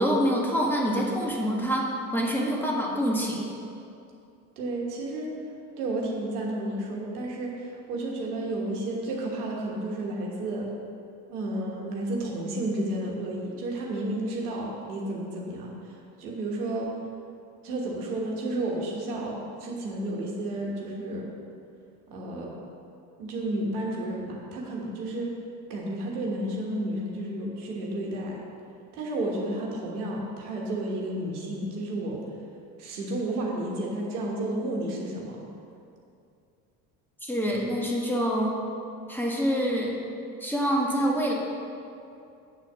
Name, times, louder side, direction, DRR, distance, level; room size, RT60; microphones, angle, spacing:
voice 1, 0.0-3.5 37.2-38.5 39.1-40.0 40.4-41.3, equal, 5° left, -2 dB, 1.6 m, -26 dB
voice 2, 4.6-5.3 5.8-10.7 11.3-16.9 17.6-21.3 22.1-22.5 23.2-25.3 25.7-28.4 28.9-32.2 32.8-35.4, right 1 dB, 85° right, -2 dB, 1.4 m, -32 dB
8.2 x 4.3 x 6.0 m, 2.5 s
hypercardioid pair, 65°, 44 cm